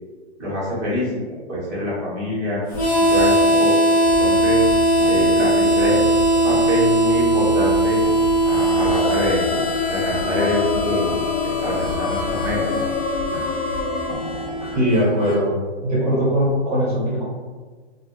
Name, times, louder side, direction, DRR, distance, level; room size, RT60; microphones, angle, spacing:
voice 1, 0.4-2.6 3.1-3.7 4.2-4.6 5.0-6.0 6.4-8.0 8.4-9.4 9.9-11.1 11.4-12.6, left 1 dB, ahead, -17 dB, 0.7 m, -25 dB
Harmonica, 2.7-15.4, right 1 dB, 70° left, 1.3 m, -20 dB
sound 1, 2.7-14.8, left 1 dB, 50° left, 0.8 m, -33 dB
sound 2, 9.0-14.1, left 3 dB, 85° left, 0.5 m, -27 dB
voice 2, 14.7-15.5 15.8-17.3, equal, 35° right, -6 dB, 0.7 m, -20 dB
2.5 x 2.0 x 2.8 m, 1.4 s
hypercardioid pair, 170°, 34 cm